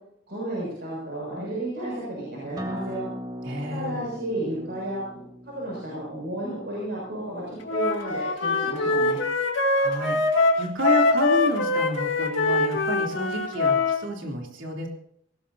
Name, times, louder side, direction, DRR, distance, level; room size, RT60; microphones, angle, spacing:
voice 1, 0.3-3.1 3.7-5.0 5.4-9.2, right 1 dB, 55° right, -5 dB, 6.7 m, -32 dB
Acoustic guitar, 2.6-7.8, equal, 20° right, 1.5 m, -39 dB
voice 2, 3.4-4.0 9.7-14.9, equal, 75° right, 0 dB, 3.4 m, -30 dB
Wind instrument woodwind instrument, 7.7-14.0, left 3 dB, 70° left, 2.3 m, -23 dB
19.5 x 18.0 x 2.8 m, 0.67 s
head